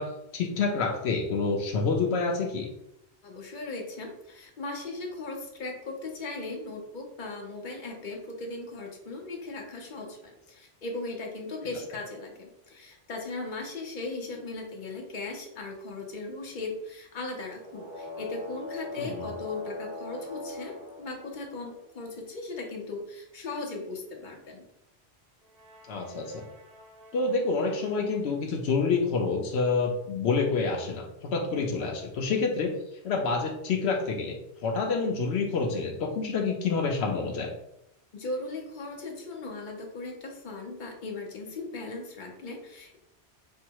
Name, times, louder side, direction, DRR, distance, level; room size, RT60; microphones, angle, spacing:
voice 1, 0.0-2.7 19.0-19.3 25.9-26.5 27.1-32.8 33.0-37.5, left 4 dB, 80° left, 1 dB, 0.9 m, -28 dB
voice 2, 3.2-24.6 38.1-43.0, left 3 dB, 50° left, 1 dB, 1.0 m, -38 dB
sound 1, 17.5-22.1 25.4-28.3, left 2 dB, 60° right, 1.0 m, -43 dB
5.4 x 2.0 x 4.5 m, 0.82 s
omnidirectional pair, 1.1 m